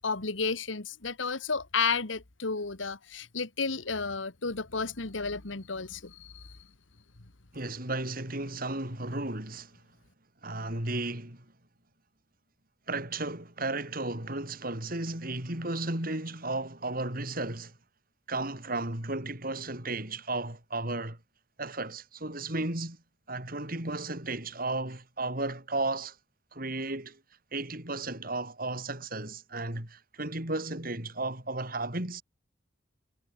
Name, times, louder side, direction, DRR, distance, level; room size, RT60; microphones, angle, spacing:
voice 1, 0.0-6.5, left 4 dB, 85° left, 1.7 m, -32 dB
voice 2, 7.5-9.7 10.4-11.4 12.9-17.7 18.3-21.2 21.6-23.0 23.3-26.1 26.5-27.2 27.5-32.2, right 2 dB, 50° right, 6.1 m, -34 dB
head